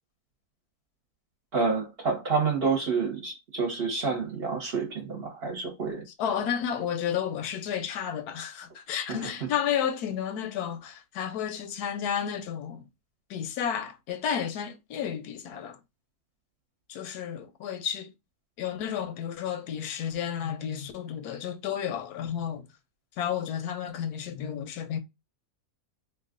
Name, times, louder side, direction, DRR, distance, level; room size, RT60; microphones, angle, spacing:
voice 1, 1.5-6.0 9.1-9.3, right 4 dB, 45° right, 1.1 m, -28 dB
voice 2, 6.2-12.8 13.3-15.8 16.9-18.1 18.6-22.6 23.2-25.0, left 8 dB, 85° left, 1.1 m, -32 dB
2.9 x 2.4 x 3.6 m
omnidirectional pair, 1.6 m